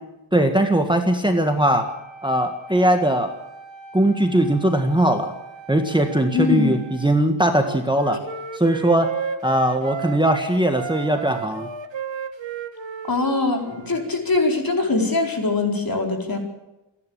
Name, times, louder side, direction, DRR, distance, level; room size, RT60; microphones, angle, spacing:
voice 1, 0.3-1.8 2.2-3.3 3.9-5.3 5.7-8.2 8.5-9.1 9.4-11.7, right 1 dB, 10° right, 5 dB, 1.7 m, -20 dB
Wind instrument woodwind instrument, 1.2-7.2, right 5 dB, 65° left, 4.6 m, -43 dB
voice 2, 6.3-6.7 13.1-16.4, left 3 dB, 45° left, 3 dB, 4.6 m, -22 dB
Wind instrument woodwind instrument 2, 7.5-10.4 10.7-14.1, right 7 dB, 65° right, 1.5 m, -33 dB
28.0 x 11.0 x 8.8 m, 0.96 s
wide cardioid pair, 135°, 48 cm